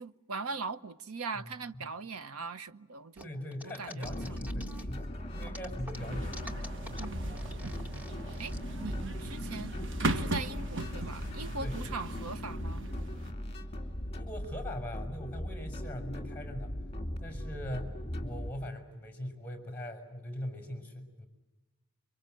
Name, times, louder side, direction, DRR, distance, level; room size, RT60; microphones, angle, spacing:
voice 1, 0.0-3.3 3.6-4.4 5.4-5.7 7.0-7.4 8.4-8.5 8.8-9.7 10.0-12.9, right 4 dB, 80° right, 1.0 m, -40 dB
voice 2, 3.2-6.4 11.6-11.9 14.1-16.8 17.2-21.3, left 1 dB, 10° left, 5.9 m, -41 dB
sound 1, 3.2-5.0 5.4-8.6, left 1 dB, 10° right, 1.8 m, -47 dB
sound 2, 4.0-18.5, equal, 25° left, 2.6 m, -39 dB
sound 3, 5.9-13.3, right 2 dB, 60° right, 1.4 m, -39 dB
29.5 x 24.5 x 7.8 m
head